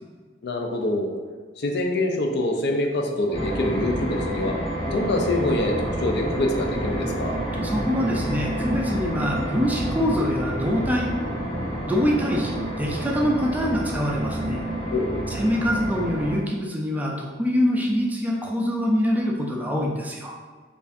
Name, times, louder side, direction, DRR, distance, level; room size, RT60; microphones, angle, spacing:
voice 1, 0.4-1.1 1.6-4.6 4.9-7.3 14.9-15.3, left 1 dB, 60° left, 2 dB, 0.5 m, -25 dB
sound 1, 3.3-16.4, right 1 dB, 25° left, 1.1 m, -29 dB
voice 2, 7.6-11.1 11.9-14.6 15.3-20.3, equal, 10° right, -2 dB, 0.4 m, -24 dB
4.7 x 2.5 x 2.5 m, 1.5 s
head